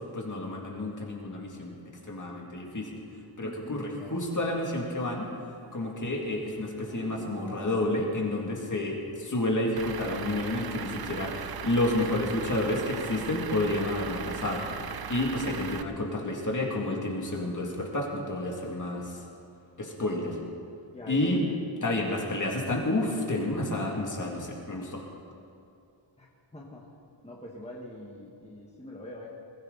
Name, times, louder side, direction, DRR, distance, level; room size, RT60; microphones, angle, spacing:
voice 1, 0.1-1.7 2.1-2.9 3.4-5.3 5.7-14.7 15.1-19.2 19.8-20.4 21.1-21.4 21.8-25.0, left 1 dB, 40° left, -1 dB, 2.4 m, -30 dB
voice 2, 3.4-4.2 20.9-21.5 26.2-26.3 26.5-26.9 27.2-29.3, left 1 dB, 15° left, -3 dB, 1.5 m, -43 dB
Livestock farm animals working animals, 5.1-8.3, right 1 dB, 30° right, 2.2 m, -46 dB
Truck / Idling, 9.8-15.8, right 7 dB, 55° right, 0.6 m, -38 dB
21.5 x 15.0 x 4.0 m, 2.5 s
wide cardioid pair, 155°, 46 cm